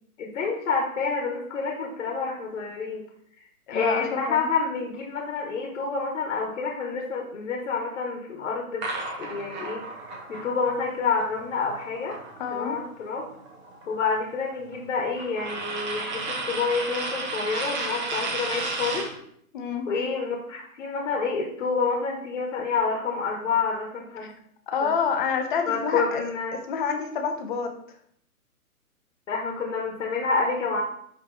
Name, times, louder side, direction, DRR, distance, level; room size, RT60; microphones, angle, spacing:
voice 1, 0.2-3.1 3.7-8.9 9.2-9.8 10.3-12.2 12.5-13.3 13.9-19.1 19.9-24.3 24.8-24.9 25.6-26.5 29.3-30.8, left 4 dB, 55° left, 0 dB, 1.6 m, -28 dB
voice 2, 3.7-4.5 12.4-12.8 19.5-19.9 24.2-24.3 24.7-26.2 26.7-27.7, left 6 dB, 35° left, 4 dB, 1.0 m, -28 dB
sound 1, 8.8-12.9 13.2-19.2, right 3 dB, 30° right, 1.4 m, -33 dB
10.5 x 3.5 x 3.4 m, 0.68 s
hypercardioid pair, 145°, 45 cm